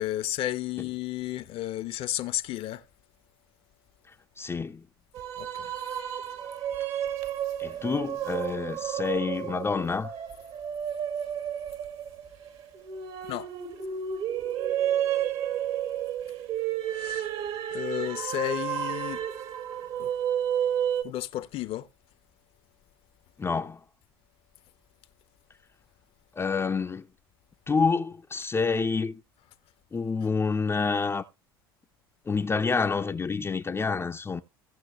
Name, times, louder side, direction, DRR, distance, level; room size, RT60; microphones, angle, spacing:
voice 1, 0.0-2.9 5.4-5.7 13.2-13.5 16.8-17.3 17.7-19.3 20.0-20.1 21.0-21.9, left 13 dB, 50° left, 0.9 m, -32 dB
voice 2, 4.1-4.8 7.6-10.1 23.4-23.8 26.3-27.1 27.7-29.2 29.9-31.2 32.3-34.4, left 4 dB, 20° left, 0.7 m, -28 dB
sound 1, 5.1-21.0, right 10 dB, 55° right, 1.8 m, -31 dB
17.0 x 6.1 x 3.1 m
hypercardioid pair, 70°, 12 cm